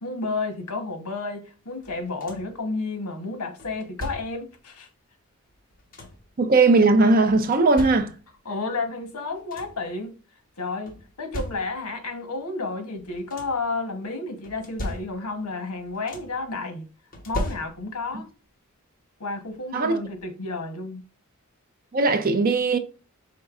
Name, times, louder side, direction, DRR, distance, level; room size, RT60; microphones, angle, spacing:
voice 1, 0.0-4.9 8.4-10.2 10.6-16.9 17.2-18.3 19.2-21.0, left 3 dB, 80° left, 1.0 m, -31 dB
sound 1, 1.8-2.6 3.6-4.5 5.5-6.3 7.3-8.5 9.0-9.1 9.3-9.9 10.9-12.0 13.0-13.7 14.4-15.5 15.7-16.5 17.1-18.1 19.4-19.5 20.0-20.2, equal, 40° left, 1.1 m, -37 dB
voice 2, 6.4-8.1 19.7-20.0 21.9-22.8, right 3 dB, 40° right, 0.6 m, -19 dB
5.2 x 3.7 x 2.4 m
head